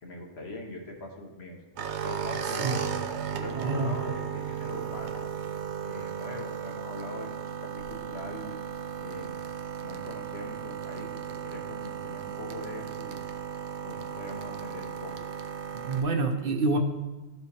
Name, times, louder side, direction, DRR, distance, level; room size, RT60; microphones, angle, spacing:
voice 1, 0.0-1.6 2.0-2.9 3.2-5.3 5.8-7.4 7.7-8.5 9.0-9.4 9.8-13.2 13.8-15.1, left 2 dB, 75° left, -1 dB, 1.4 m, -41 dB
sound 1, 1.8-16.0, right 8 dB, 90° right, 0.9 m, -35 dB
voice 2, 15.7-16.8, right 3 dB, 60° right, 4 dB, 0.8 m, -27 dB
12.5 x 4.4 x 2.8 m, 1.1 s
omnidirectional pair, 1.1 m